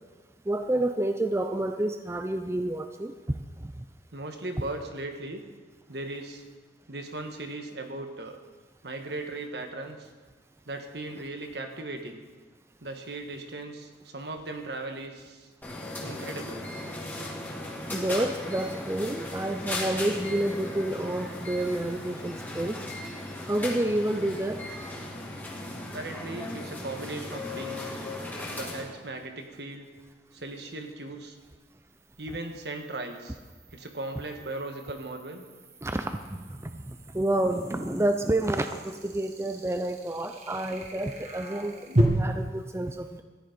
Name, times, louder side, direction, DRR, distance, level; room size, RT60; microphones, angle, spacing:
voice 1, 0.5-3.1 3.6-3.7 17.9-22.8 23.5-24.6 35.8-36.8 37.1-43.2, right 1 dB, 15° right, 7 dB, 0.5 m, -29 dB
voice 2, 4.1-5.5 5.9-6.4 6.9-8.4 8.8-10.1 10.7-12.2 12.8-15.5 16.0-16.7 25.9-27.9 28.5-29.9 30.3-31.4 32.2-33.4 33.7-35.4, right 2 dB, 65° right, 5 dB, 1.5 m, -38 dB
sound 1, 15.6-28.9, left 1 dB, 10° left, 2.2 m, -37 dB
sound 2, 28.4-28.5 31.9-42.0, right 1 dB, 40° right, 1.6 m, -35 dB
14.0 x 10.5 x 5.2 m, 1.4 s
head